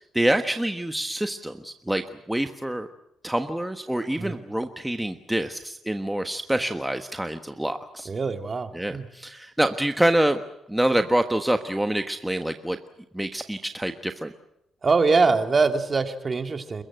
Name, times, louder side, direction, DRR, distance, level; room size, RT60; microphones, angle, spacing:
voice 1, 0.1-2.9 3.2-8.1 8.7-10.4 10.7-12.8 13.1-14.3, right 1 dB, 5° right, 7 dB, 1.3 m, -26 dB
voice 2, 8.1-9.0 14.8-16.8, right 4 dB, 35° right, 6 dB, 2.5 m, -23 dB
29.0 x 15.0 x 9.2 m, 0.81 s
cardioid pair, 90°, 0 cm